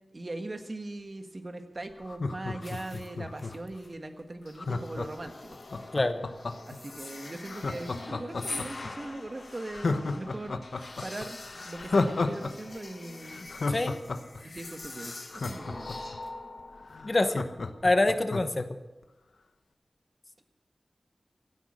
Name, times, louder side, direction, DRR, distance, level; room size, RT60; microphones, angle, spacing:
voice 1, 0.1-5.6 6.7-10.6 11.0-11.4 11.6-13.4 14.4-15.9, right 2 dB, 40° right, 6 dB, 1.5 m, -40 dB
Laughter, 2.0-3.7 4.6-6.8 7.5-8.9 9.3-9.4 9.7-12.5 12.8-12.9 13.3-16.2 16.6-16.7 16.9-18.6 19.0-19.1, left 3 dB, 80° left, 1.0 m, -32 dB
sound 1, 2.6-3.1 3.4-3.9 4.4-17.8, left 2 dB, 60° left, 1.5 m, -44 dB
voice 2, 13.7-14.0 17.0-17.5 17.8-18.7, left 2 dB, 35° left, 9 dB, 1.0 m, -25 dB
16.5 x 10.5 x 6.4 m, 1.0 s
wide cardioid pair, 85°, 0 cm